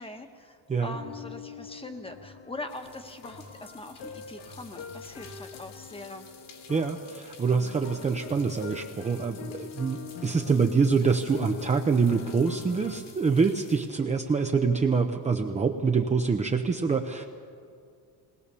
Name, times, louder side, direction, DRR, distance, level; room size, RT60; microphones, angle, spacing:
voice 1, 0.0-6.3, left 2 dB, 15° left, 7 dB, 1.3 m, -42 dB
sound 1, 0.8-13.0, left 6 dB, 85° left, 2.0 m, -44 dB
sound 2, 1.9-15.1, left 6 dB, 70° left, 3.2 m, -53 dB
voice 2, 6.7-17.3, right 5 dB, 15° right, 3 dB, 0.7 m, -25 dB
20.0 x 20.0 x 6.9 m, 2.3 s
cardioid pair, 135°, 43 cm